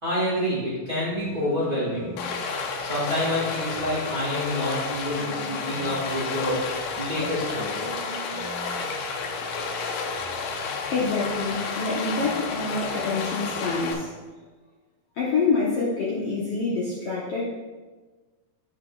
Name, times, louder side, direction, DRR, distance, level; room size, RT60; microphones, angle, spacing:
voice 1, 0.0-2.1 2.8-6.7 6.9-7.9, left 1 dB, 40° right, -8 dB, 1.4 m, -28 dB
sound 1, 1.1-13.9, right 2 dB, 85° right, 0.8 m, -44 dB
Stream, 2.2-13.9, left 4 dB, 85° left, 2.7 m, -31 dB
voice 2, 10.9-14.1 15.2-17.4, left 4 dB, 70° left, -7 dB, 1.5 m, -26 dB
8.9 x 7.4 x 2.4 m, 1.3 s
omnidirectional pair, 4.2 m